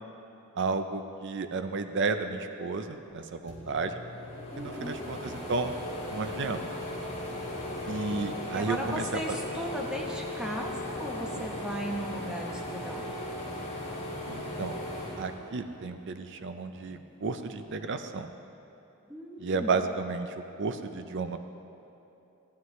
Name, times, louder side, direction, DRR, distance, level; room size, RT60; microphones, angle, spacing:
voice 1, 0.6-4.0 4.6-5.8 6.1-6.7 7.9-9.4 14.3-14.8 15.2-18.3 19.4-21.4, right 4 dB, 55° right, 8 dB, 0.5 m, -32 dB
sound 1, 3.1-3.2 3.5-16.1 16.5-17.6, left 1 dB, 30° left, 1.8 m, -37 dB
voice 2, 4.5-5.0 8.5-13.0 19.1-19.7, equal, 5° right, -1 dB, 1.0 m, -36 dB
15.0 x 9.4 x 3.2 m, 3.0 s
head